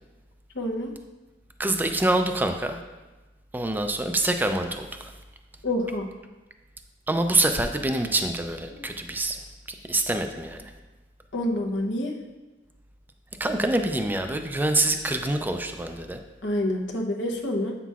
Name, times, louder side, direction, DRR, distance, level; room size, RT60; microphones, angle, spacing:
voice 1, 0.5-0.9 5.6-6.1 8.7-8.8 11.3-12.2 16.4-17.7, left 1 dB, 70° left, 1 dB, 0.8 m, -27 dB
voice 2, 1.6-2.8 3.5-5.1 7.1-9.4 9.9-10.6 13.4-16.2, right 2 dB, 10° right, 6 dB, 0.4 m, -25 dB
8.2 x 5.7 x 2.4 m, 1.2 s
head